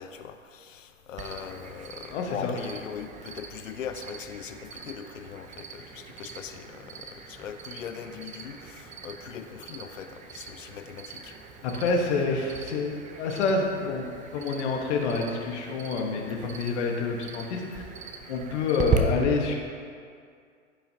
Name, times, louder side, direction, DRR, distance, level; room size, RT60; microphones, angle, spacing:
voice 1, 0.0-11.3, left 7 dB, 90° left, 9 dB, 0.7 m, -40 dB
Cricket, 1.2-19.0, right 8 dB, 20° right, 0.7 m, -39 dB
voice 2, 2.1-2.5 11.6-17.8 18.3-19.6, left 4 dB, 65° left, 1 dB, 1.5 m, -28 dB
14.5 x 5.7 x 2.9 m, 2.2 s
hypercardioid pair, 110°, 37 cm